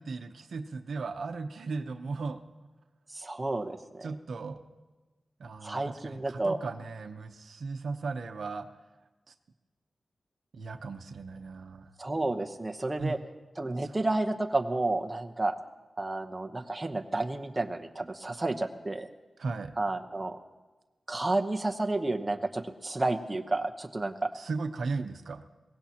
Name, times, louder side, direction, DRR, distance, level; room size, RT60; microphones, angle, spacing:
voice 1, 0.0-2.4 4.0-4.6 5.4-8.7 9.3-9.4 10.5-11.9 13.0-13.2 13.8-13.9 19.4-19.7 24.3-25.4, right 4 dB, 80° right, 7 dB, 0.8 m, -36 dB
voice 2, 3.1-4.1 5.6-6.6 12.0-13.2 13.6-15.5 16.0-19.1 19.8-20.4 21.1-24.3, right 2 dB, 20° right, 5 dB, 1.0 m, -31 dB
22.5 x 18.0 x 2.9 m, 1.2 s
wide cardioid pair, 110°, 0 cm